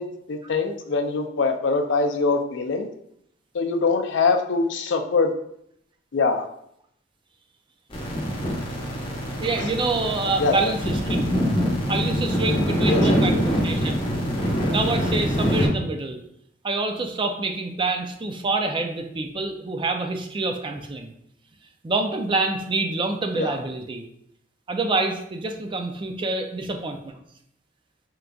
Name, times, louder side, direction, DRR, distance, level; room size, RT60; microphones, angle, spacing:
voice 1, 0.0-2.9 3.5-5.3 6.1-6.5 9.6-9.8 10.4-10.7 12.9-13.6 23.3-23.6, left 4 dB, 75° left, 6 dB, 0.5 m, -24 dB
sound 1, 7.9-15.7, equal, 30° left, 0.9 m, -24 dB
voice 2, 9.4-11.3 11.9-14.0 14.7-16.2 16.6-21.1 21.8-24.0 24.7-27.1, right 3 dB, 25° right, 5 dB, 0.4 m, -26 dB
4.5 x 3.8 x 2.3 m, 0.73 s
head